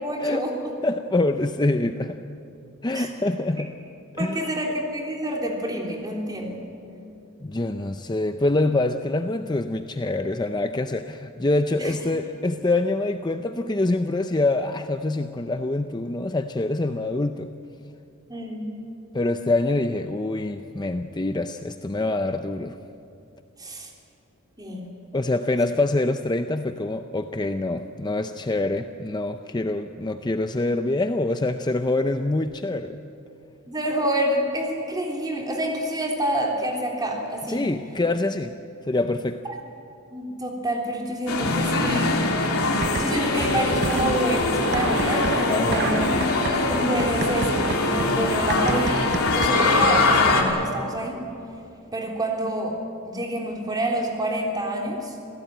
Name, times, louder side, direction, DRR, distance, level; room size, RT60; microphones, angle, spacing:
voice 1, 0.0-0.7 2.9-3.1 4.2-6.6 11.8-11.9 18.3-18.7 23.6-23.9 24.6-24.8 33.7-37.7 39.5-39.6 40.1-42.2 42.9-46.0 46.7-51.2 51.9-52.8 53.1-55.2, right 1 dB, 20° right, 0 dB, 3.5 m, -28 dB
voice 2, 0.8-2.2 2.8-3.7 4.1-4.6 7.4-17.5 19.1-22.8 25.1-33.0 37.5-38.6 38.8-39.4 45.5-46.1, left 2 dB, 20° left, 8 dB, 0.6 m, -25 dB
sound 1, 41.3-50.4, left 2 dB, 80° left, 3.3 m, -22 dB
sound 2, 42.8-43.4 43.7-50.2, right 4 dB, 50° right, 0.8 m, -32 dB
27.0 x 17.0 x 9.0 m, 2.8 s
head